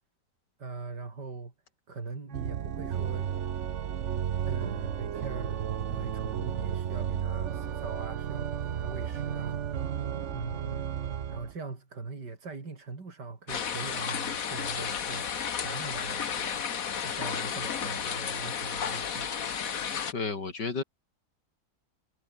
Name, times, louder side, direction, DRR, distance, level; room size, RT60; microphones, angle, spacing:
voice 1, 0.6-1.5 1.9-3.4 4.5-5.6 5.9-9.6 10.3-10.8 11.3-15.3 15.6-16.6 17.0-19.3, right 4 dB, 75° right, 4.1 m, -41 dB
Organ, 2.3-11.5, right 9 dB, 50° right, 1.1 m, -33 dB
sound 1, 13.5-20.1, left 7 dB, 55° left, 1.7 m, -33 dB
voice 2, 20.1-20.8, left 4 dB, 90° left, 4.0 m, -32 dB
omnidirectional pair, 1.8 m